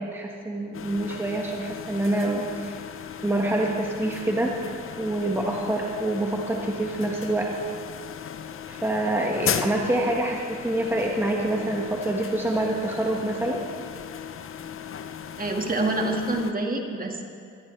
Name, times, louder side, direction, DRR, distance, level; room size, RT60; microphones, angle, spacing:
voice 1, 0.0-2.8 3.2-4.5 5.0-7.5 8.7-13.6, right 1 dB, 5° right, -1 dB, 1.5 m, -26 dB
sound 1, 0.7-16.5, left 8 dB, 45° left, 0.7 m, -36 dB
voice 2, 15.4-17.2, right 2 dB, 30° right, 2 dB, 1.9 m, -26 dB
21.0 x 13.5 x 3.3 m, 2.2 s
cardioid pair, 90°, 30 cm